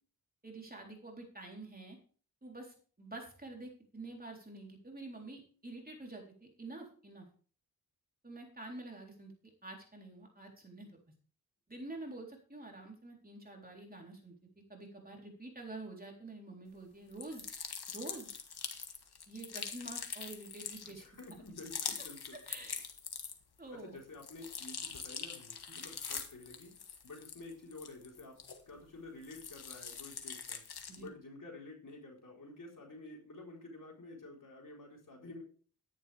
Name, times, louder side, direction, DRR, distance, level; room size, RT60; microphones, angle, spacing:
voice 1, 0.4-2.0 2.4-7.3 8.2-10.9 11.7-14.3 14.7-17.5 17.9-18.3 19.3-21.0 22.5-22.9 23.6-24.0 25.7-25.8 30.9-31.1, right 2 dB, 25° right, 0 dB, 3.8 m, -48 dB
sound 1, 17.1-23.6 24.0-28.9 29.2-31.1, left 6 dB, 75° left, 1.7 m, -44 dB
voice 2, 20.8-22.4 23.7-26.8 27.0-28.4 28.7-35.4, left 2 dB, 55° left, -1 dB, 4.4 m, -50 dB
12.5 x 10.5 x 3.5 m, 0.41 s
wide cardioid pair, 75°, 38 cm